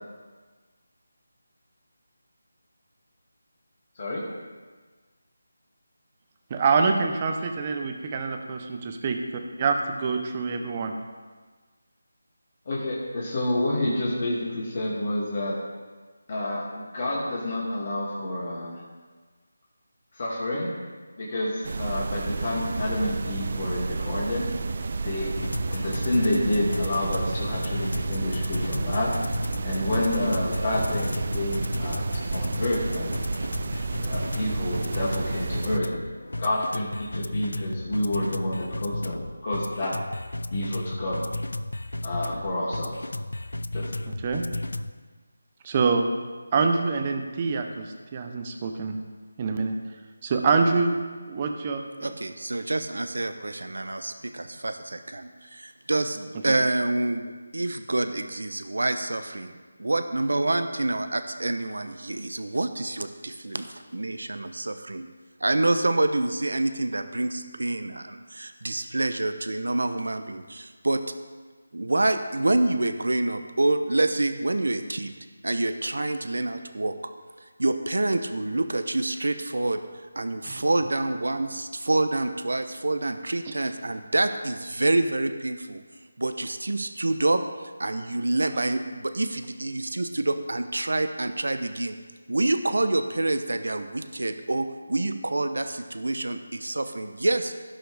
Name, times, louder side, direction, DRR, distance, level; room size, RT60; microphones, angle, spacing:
voice 1, 6.5-9.2 9.6-10.9 29.9-30.0 44.2-44.4 45.6-46.1 46.5-49.0 49.4-49.7 50.2-51.0 51.3-52.1 56.5-56.6, right 4 dB, 30° right, 5 dB, 0.9 m, -25 dB
voice 2, 12.7-15.6 16.3-18.8 20.1-20.7 21.2-24.5 25.0-29.1 29.6-32.0 32.3-33.1 34.0-35.9 36.4-40.0 40.5-41.2 42.0-43.0 43.7-43.9, left 1 dB, 45° left, -6 dB, 2.4 m, -29 dB
sound 1, 21.6-35.8, right 4 dB, 45° right, 0.5 m, -31 dB
sound 2, 25.4-44.9, left 1 dB, 80° left, 0.5 m, -33 dB
voice 3, 52.0-59.5 59.8-65.1 65.4-71.0 71.7-75.1 75.4-76.9 77.4-79.8 80.2-85.8 86.2-92.0 92.3-97.5, right 2 dB, 75° right, 8 dB, 0.8 m, -27 dB
16.5 x 5.9 x 3.5 m, 1.4 s
figure-of-eight pair, 165°, 0 cm